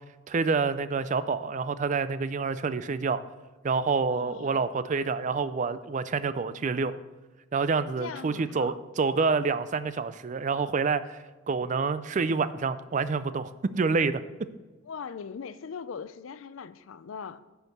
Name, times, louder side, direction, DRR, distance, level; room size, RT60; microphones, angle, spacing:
voice 1, 0.3-3.2 3.6-6.9 7.5-11.2 11.5-14.2, right 4 dB, 40° right, 14 dB, 0.4 m, -27 dB
voice 2, 4.1-4.7 8.0-8.8 14.9-17.4, left 6 dB, 85° left, 14 dB, 0.4 m, -40 dB
9.7 x 4.6 x 6.6 m, 1.2 s
head